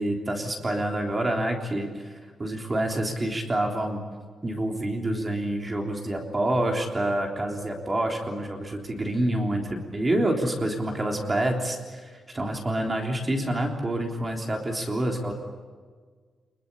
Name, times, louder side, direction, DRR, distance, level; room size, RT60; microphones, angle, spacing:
voice 1, 0.0-2.1 2.4-4.0 4.4-15.3, right 1 dB, 20° right, 2 dB, 3.5 m, -27 dB
27.5 x 22.0 x 8.7 m, 1.5 s
wide cardioid pair, 160°, 0 cm